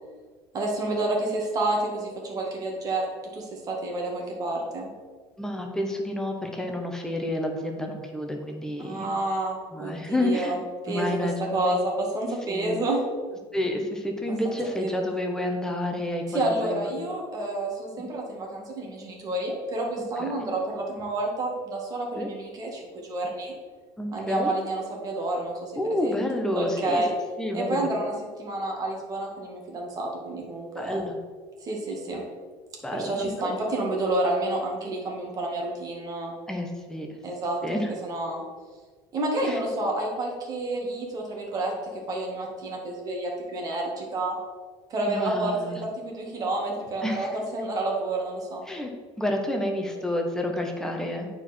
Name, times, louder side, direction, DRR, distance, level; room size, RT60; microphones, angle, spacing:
voice 1, 0.5-3.1 3.3-4.9 8.8-10.6 10.8-13.0 14.3-14.9 16.3-23.5 24.1-25.7 26.0-26.2 26.5-27.1 27.5-28.1 28.4-31.0 31.6-32.2 32.9-36.3 37.2-37.6 38.0-38.4 39.1-44.4 44.9-48.6, right 2 dB, 35° right, -1 dB, 1.9 m, -29 dB
voice 2, 5.4-9.1 9.7-10.6 10.9-11.8 12.5-12.8 13.5-16.2 16.6-17.0 18.0-18.1 20.2-20.5 22.2-22.3 24.0-24.5 25.8-27.0 27.4-27.9 30.8-31.2 32.8-33.6 36.5-37.1 37.6-37.9 39.4-39.6 45.1-45.8 47.0-47.3 48.7-48.9 49.2-51.3, left 1 dB, 5° left, 2 dB, 1.1 m, -29 dB
8.8 x 4.6 x 4.4 m, 1.5 s
cardioid pair, 135°, 11 cm